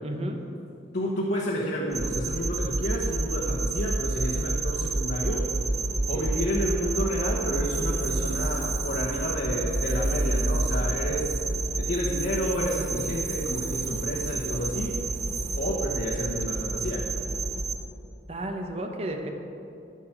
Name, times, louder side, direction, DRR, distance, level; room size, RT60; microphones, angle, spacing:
voice 1, 0.0-0.4 5.9-6.5 18.3-19.3, right 1 dB, 35° right, 4 dB, 0.9 m, -33 dB
voice 2, 0.9-5.5 6.1-11.3 11.8-15.0 15.5-17.1, equal, 60° left, -5 dB, 1.3 m, -30 dB
sound 1, 1.9-17.8, right 2 dB, 20° right, 0.5 m, -29 dB
sound 2, 5.2-17.6, left 1 dB, 80° right, 2.8 m, -44 dB
sound 3, 6.7-15.6, right 7 dB, 60° right, 2.8 m, -47 dB
14.0 x 5.3 x 6.1 m, 2.7 s
head